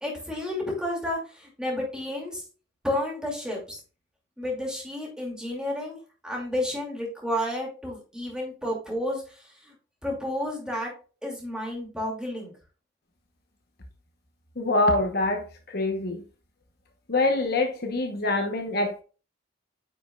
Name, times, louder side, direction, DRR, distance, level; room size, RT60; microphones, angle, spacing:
voice 1, 0.0-2.4 2.8-3.8 4.4-6.0 6.2-9.7 10.0-10.9 11.2-12.5, left 1 dB, 5° right, 2.5 m, -31 dB
voice 2, 14.6-15.4 15.7-16.2 17.1-19.0, left 2 dB, 50° left, 1.0 m, -25 dB
9.8 x 5.2 x 2.4 m
head